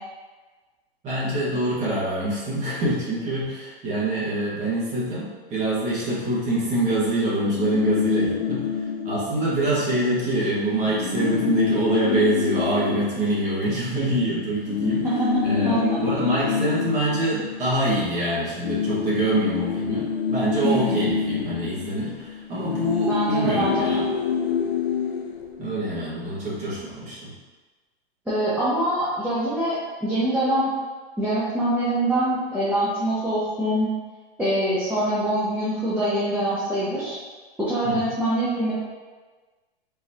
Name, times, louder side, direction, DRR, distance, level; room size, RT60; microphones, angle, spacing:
voice 1, 1.0-15.1 15.4-24.0 25.6-27.3 37.8-38.1, right 1 dB, 25° right, -7 dB, 1.3 m, -25 dB
sound 1, 7.4-10.0 10.3-10.4 10.7-14.1 14.6-18.2 18.5-26.1, left 6 dB, 90° left, 0.6 m, -27 dB
voice 2, 15.6-16.0 20.6-21.1 23.1-24.0 28.3-30.7 31.2-33.9 34.4-37.2 37.6-38.7, right 1 dB, 5° right, -11 dB, 0.7 m, -24 dB
3.9 x 3.1 x 2.7 m, 1.3 s
hypercardioid pair, 130°, 30 cm